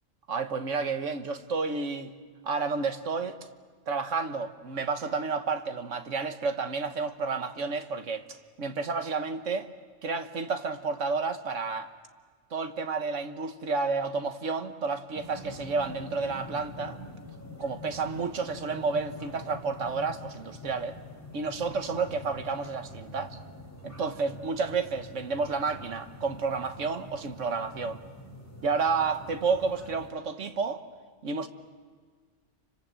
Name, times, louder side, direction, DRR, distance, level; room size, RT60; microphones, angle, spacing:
voice 1, 0.3-2.1 2.4-3.4 3.9-8.2 8.6-9.7 10.0-11.9 12.5-17.0 17.6-21.0 21.3-23.4 23.8-28.0 28.6-30.8 31.2-31.5, right 4 dB, 85° right, 1.6 m, -30 dB
sound 1, 15.1-30.1, left 1 dB, 10° left, 4.3 m, -45 dB
29.0 x 25.5 x 7.6 m
omnidirectional pair, 1.3 m